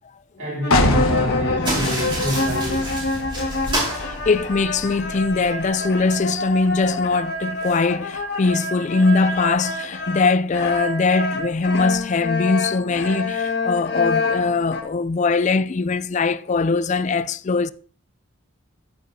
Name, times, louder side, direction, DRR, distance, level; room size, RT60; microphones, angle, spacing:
voice 1, 0.4-3.0, equal, 60° right, 2.9 m, -28 dB
sound 1, 0.6-14.8, left 3 dB, 50° left, 1.7 m, -27 dB
sound 2, 0.7-6.3, left 1 dB, 80° left, 1.3 m, -26 dB
sound 3, 1.6-5.0, right 1 dB, 25° right, 4.8 m, -29 dB
voice 2, 4.0-17.7, left 4 dB, 35° left, 0.4 m, -21 dB
10.5 x 10.5 x 2.7 m
head